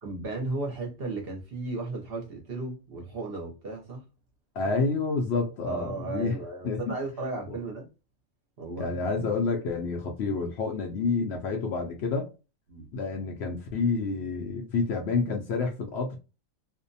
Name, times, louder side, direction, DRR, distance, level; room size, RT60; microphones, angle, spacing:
voice 1, 0.0-4.0 5.6-7.9 8.6-8.9 12.7-12.9, right 3 dB, 50° right, 0.9 m, -35 dB
voice 2, 4.6-6.3 6.6-7.0 7.5-7.6 8.8-12.3 12.9-16.2, left 4 dB, 65° left, 0.7 m, -29 dB
2.6 x 2.1 x 2.6 m
omnidirectional pair, 1.4 m